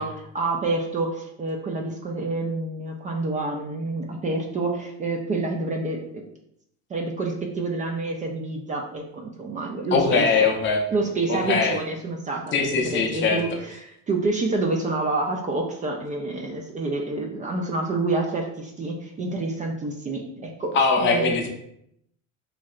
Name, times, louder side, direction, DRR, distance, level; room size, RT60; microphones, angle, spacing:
voice 1, 0.0-6.2 6.9-10.3 10.9-20.7 21.0-21.4, right 3 dB, 25° right, 2 dB, 0.4 m, -28 dB
voice 2, 9.9-10.8 11.3-11.8 12.5-13.4 20.7-21.5, left 5 dB, 40° left, 2 dB, 0.6 m, -21 dB
3.1 x 2.7 x 2.4 m, 0.74 s
supercardioid pair, 110°, 31 cm